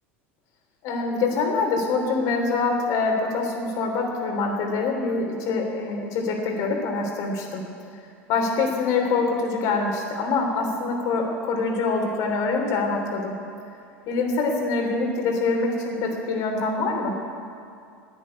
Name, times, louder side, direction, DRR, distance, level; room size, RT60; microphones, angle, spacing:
voice 1, 0.8-7.6 8.3-13.3 14.1-17.1, left 3 dB, 55° left, 2 dB, 3.2 m, -25 dB
11.5 x 9.4 x 9.7 m, 2.4 s
hypercardioid pair, 85°, 7 cm